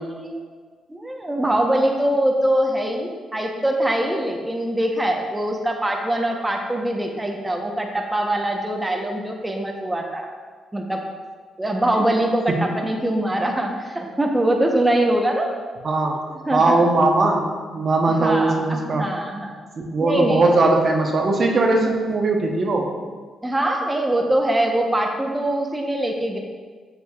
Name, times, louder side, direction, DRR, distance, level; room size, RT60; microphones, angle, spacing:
voice 1, 0.9-10.3 10.7-11.0 11.6-15.5 16.5-16.8 18.1-19.6 20.0-20.5 23.4-26.4, right 1 dB, 15° right, 1 dB, 0.8 m, -23 dB
voice 2, 15.8-16.2 16.5-19.1 19.9-22.9, right 2 dB, 50° right, 1 dB, 0.9 m, -19 dB
7.0 x 6.6 x 2.3 m, 1.5 s
supercardioid pair, 65°, 0 cm